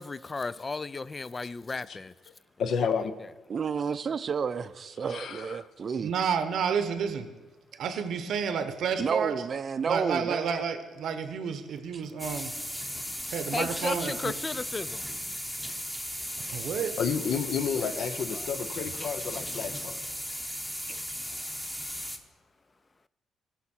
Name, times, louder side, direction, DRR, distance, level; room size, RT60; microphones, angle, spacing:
voice 1, 0.0-2.1 3.2-3.3 13.5-15.1 17.8-18.5, left 3 dB, 30° left, 0.3 m, -35 dB
voice 2, 2.6-3.1 5.1-5.5 17.0-20.0, left 6 dB, 65° left, 0.8 m, -30 dB
voice 3, 3.5-6.1 9.0-10.6 11.9-12.0 16.5-16.6 20.9-21.0, right 6 dB, 45° right, 0.5 m, -31 dB
voice 4, 6.0-7.3 7.8-9.4 9.9-12.5 13.3-14.3 16.5-16.9, right 6 dB, 70° right, 0.8 m, -30 dB
sound 1, 12.2-22.2, equal, 5° left, 1.0 m, -36 dB
16.5 x 5.7 x 4.3 m
cardioid pair, 90°, 0 cm